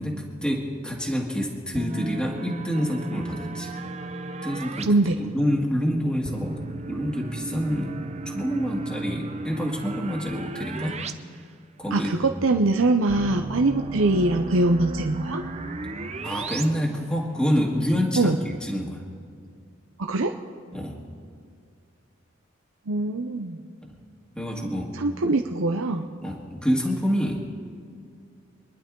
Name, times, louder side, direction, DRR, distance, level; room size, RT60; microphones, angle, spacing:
voice 1, 0.0-3.7 4.4-4.9 5.2-11.0 11.8-12.6 16.2-19.0 20.7-21.0 23.8-24.0 24.3-24.9 26.2-27.5, equal, 5° left, -2 dB, 1.7 m, -27 dB
sound 1, 1.7-4.9 6.2-11.1 11.4-11.5 13.1-16.6, right 2 dB, 35° right, 0.7 m, -34 dB
voice 2, 4.8-5.2 11.9-15.4 18.2-18.4 20.0-20.3 22.9-23.6 24.9-26.1, right 2 dB, 90° right, 4 dB, 0.7 m, -22 dB
27.0 x 11.0 x 3.8 m, 2.2 s
head